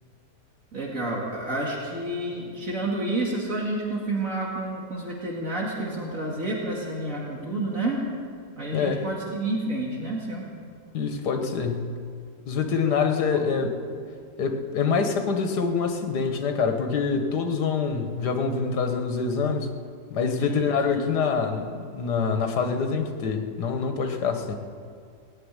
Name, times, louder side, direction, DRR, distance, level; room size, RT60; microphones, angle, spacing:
voice 1, 0.7-8.0 8.6-10.5 12.8-13.5 20.4-20.8, right 2 dB, 55° right, -3 dB, 2.5 m, -30 dB
voice 2, 10.9-12.0 12.5-13.8 14.4-19.7 20.1-24.6, left 5 dB, 90° left, 6 dB, 1.8 m, -25 dB
18.0 x 7.8 x 9.8 m, 2.2 s
omnidirectional pair, 1.7 m